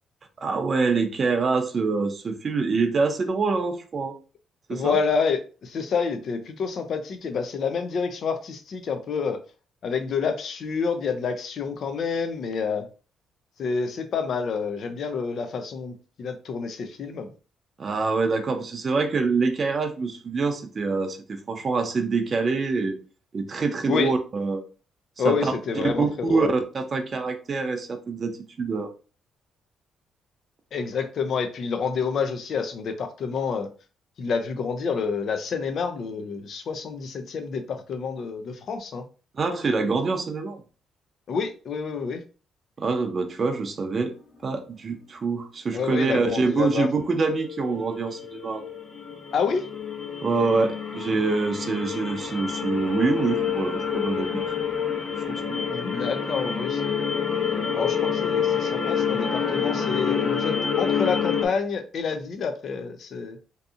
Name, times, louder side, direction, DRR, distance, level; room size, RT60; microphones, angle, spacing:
voice 1, 0.4-4.2 4.7-5.0 17.8-23.0 23.3-24.6 25.2-25.5 25.8-28.9 39.3-40.6 42.8-44.1 44.4-48.6 50.2-54.4 55.2-55.6, right 4 dB, 40° right, 5 dB, 0.5 m, -25 dB
voice 2, 4.7-9.4 9.8-12.9 13.6-17.3 23.9-24.1 25.2-26.5 30.7-33.7 34.2-39.0 41.3-42.2 45.7-46.9 49.3-49.7 55.7-57.0 57.7-63.4, left 5 dB, 60° left, 7 dB, 0.4 m, -28 dB
sound 1, 47.4-61.5, left 7 dB, 40° left, 0.8 m, -28 dB
2.6 x 2.6 x 2.4 m, 0.35 s
cardioid pair, 90°, 0 cm